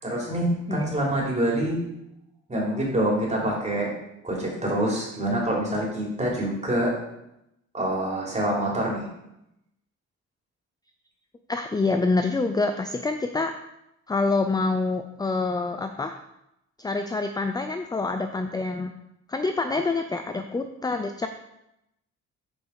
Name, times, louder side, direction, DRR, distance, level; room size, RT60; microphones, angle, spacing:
voice 1, 0.0-1.8 2.5-3.9 4.2-7.0 7.7-9.0, right 1 dB, 25° right, -3 dB, 3.3 m, -26 dB
voice 2, 11.5-13.5 14.1-16.2 16.8-18.9 19.3-21.3, left 3 dB, 15° left, 7 dB, 0.5 m, -26 dB
7.9 x 5.1 x 4.8 m, 0.84 s
cardioid pair, 90°, 30 cm